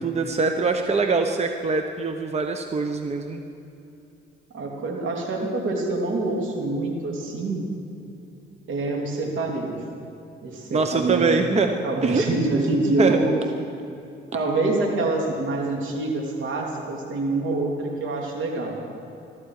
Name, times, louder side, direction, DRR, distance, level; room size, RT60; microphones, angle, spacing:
voice 1, 0.0-3.4 10.7-11.8 12.0-12.2 13.0-13.2, right 4 dB, 35° right, 5 dB, 1.0 m, -23 dB
voice 2, 4.5-7.7 8.7-9.8 10.4-11.5 11.8-13.4 14.3-18.8, right 2 dB, 75° right, 0 dB, 3.0 m, -26 dB
22.0 x 13.0 x 4.9 m, 2.7 s
cardioid pair, 90°, 20 cm